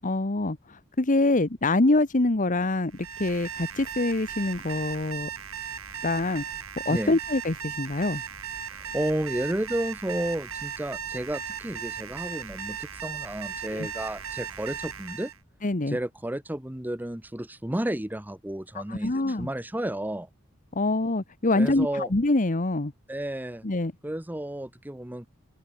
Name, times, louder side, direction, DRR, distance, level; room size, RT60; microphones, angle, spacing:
voice 1, 0.0-5.3 6.0-6.4 6.8-8.2 13.7-13.9 15.6-16.0 18.7-19.5 20.7-22.9 23.6-23.9, left 2 dB, 40° left, 1.2 m, -25 dB
Alarm, 2.9-15.4, right 7 dB, 85° right, 5.6 m, -37 dB
voice 2, 8.7-15.3 15.9-20.3 21.5-22.1 23.1-23.6 24.0-25.3, right 1 dB, 10° right, 0.9 m, -32 dB
head